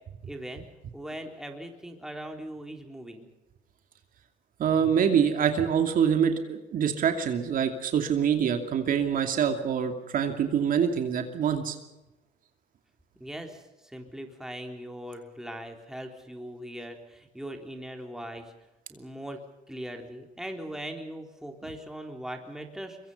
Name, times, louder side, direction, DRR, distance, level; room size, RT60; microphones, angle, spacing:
voice 1, 0.2-0.7 0.9-3.3 13.2-18.5 18.9-19.4 19.7-23.0, right 1 dB, 5° right, 3 dB, 3.9 m, -40 dB
voice 2, 4.6-11.8, right 7 dB, 55° right, 6 dB, 2.7 m, -25 dB
24.5 x 23.0 x 5.6 m, 1.0 s
cardioid pair, 110°, 17 cm